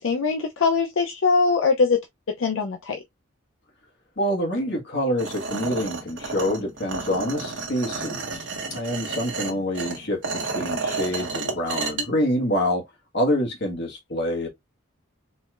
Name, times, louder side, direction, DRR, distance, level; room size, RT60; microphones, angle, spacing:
voice 1, 0.0-2.0 2.4-3.0 11.4-11.5, left 4 dB, 75° left, 0.6 m, -22 dB
voice 2, 4.2-12.8 13.1-14.5, equal, 55° left, 1.5 m, -26 dB
sound 1, 5.2-12.0, right 4 dB, 65° right, 1.1 m, -31 dB
4.0 x 3.1 x 2.4 m
head